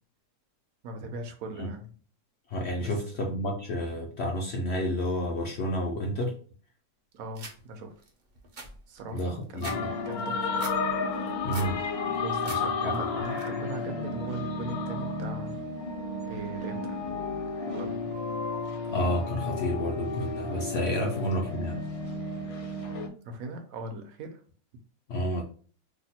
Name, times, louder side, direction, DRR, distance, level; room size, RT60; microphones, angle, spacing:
voice 1, 0.8-1.9 2.8-3.3 7.1-7.9 8.9-10.6 12.2-15.6 16.2-17.1 17.6-18.0 20.9-21.1 23.2-24.4, right 2 dB, 75° right, 6 dB, 1.0 m, -40 dB
voice 2, 2.5-6.3 9.1-9.9 11.4-11.8 12.5-12.9 18.9-21.8 25.1-25.4, equal, 65° left, 1 dB, 0.7 m, -30 dB
sound 1, 7.4-7.6 8.0-8.1 8.4-9.8 10.1-10.8 11.2-11.7 12.1-12.6 12.9-13.4, right 3 dB, 50° right, 0.6 m, -42 dB
sound 2, 9.6-23.1, left 3 dB, 80° left, 1.2 m, -32 dB
2.9 x 2.1 x 4.1 m, 0.42 s
omnidirectional pair, 1.5 m